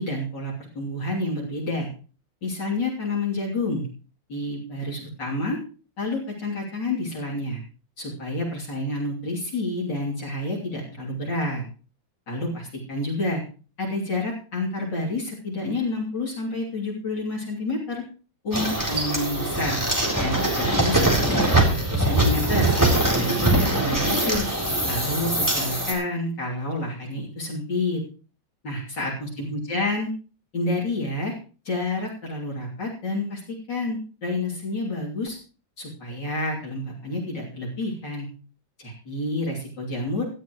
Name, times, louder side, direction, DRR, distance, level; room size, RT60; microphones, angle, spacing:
voice 1, 0.0-1.9 2.4-3.9 4.3-5.6 6.0-7.6 8.0-11.6 12.3-13.4 13.8-18.0 18.4-19.8 20.2-22.7 23.1-24.5 24.8-28.0 28.6-30.1 30.5-31.3 31.7-35.4 35.8-38.3 38.8-40.2, left 2 dB, 60° left, -4 dB, 3.7 m, -29 dB
sound 1, 18.5-25.9, right 1 dB, 10° right, 3.6 m, -22 dB
17.5 x 13.0 x 3.1 m, 0.37 s
omnidirectional pair, 2.2 m